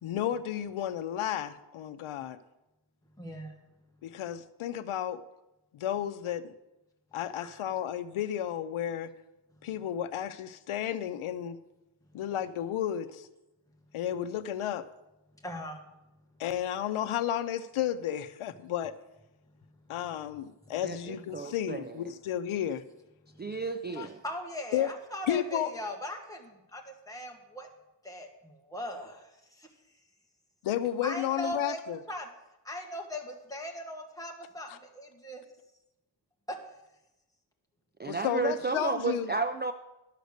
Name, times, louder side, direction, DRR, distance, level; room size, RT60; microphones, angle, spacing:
voice 1, 0.0-2.4 4.0-5.2 5.7-6.4 7.1-9.1 9.6-11.6 12.1-13.3 13.9-14.9 16.4-18.9 19.9-22.8 24.0-24.1 24.7-24.9 25.3-25.7 30.6-32.0 34.7-34.8 38.1-39.3, left 10 dB, 85° left, 12 dB, 0.7 m, -32 dB
voice 2, 3.2-3.5 7.4-7.7 15.4-15.8 20.6-20.8 23.3-23.6 24.0-27.7 28.0-29.7 31.0-32.3 32.6-35.4 36.5-36.6, left 1 dB, 5° left, 1 dB, 1.5 m, -39 dB
voice 3, 20.8-22.0 23.4-24.2 38.0-39.7, right 4 dB, 25° right, 7 dB, 0.3 m, -32 dB
11.5 x 6.7 x 6.6 m, 0.97 s
wide cardioid pair, 150°, 48 cm